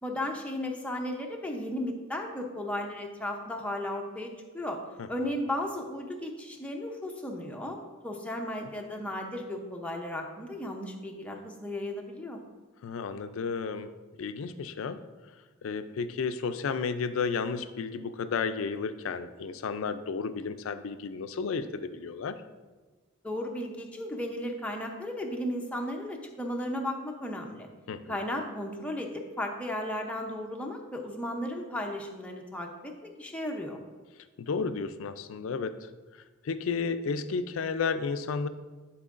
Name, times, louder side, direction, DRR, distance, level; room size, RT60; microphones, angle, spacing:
voice 1, 0.0-4.8 5.1-7.8 8.0-12.4 23.2-27.7 28.1-33.8, left 1 dB, 5° left, 1 dB, 0.6 m, -35 dB
voice 2, 5.0-5.3 8.6-8.7 12.8-13.9 14.2-15.0 15.6-22.4 27.9-28.1 34.4-35.9 36.4-38.5, left 5 dB, 80° left, 12 dB, 0.4 m, -32 dB
10.5 x 4.6 x 2.5 m, 1.3 s
head